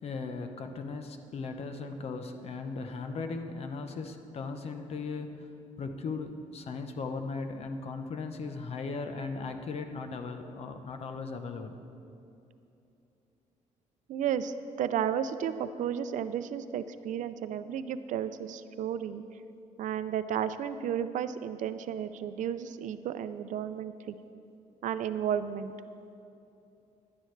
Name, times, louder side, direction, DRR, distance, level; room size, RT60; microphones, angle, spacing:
voice 1, 0.0-5.5 5.8-11.7, left 4 dB, 50° left, 6 dB, 0.9 m, -37 dB
voice 2, 14.1-19.2 19.8-24.1 24.8-25.7, right 9 dB, 70° right, 11 dB, 0.5 m, -33 dB
17.0 x 11.0 x 3.3 m, 2.8 s
cardioid pair, 135°, 13 cm